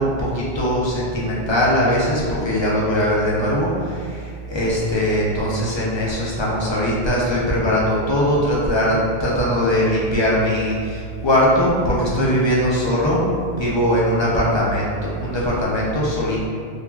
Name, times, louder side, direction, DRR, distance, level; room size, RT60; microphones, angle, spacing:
voice 1, 0.0-13.2 13.6-16.5, equal, 45° left, -6 dB, 0.3 m, -20 dB
2.3 x 2.2 x 3.1 m, 2.2 s
omnidirectional pair, 1.0 m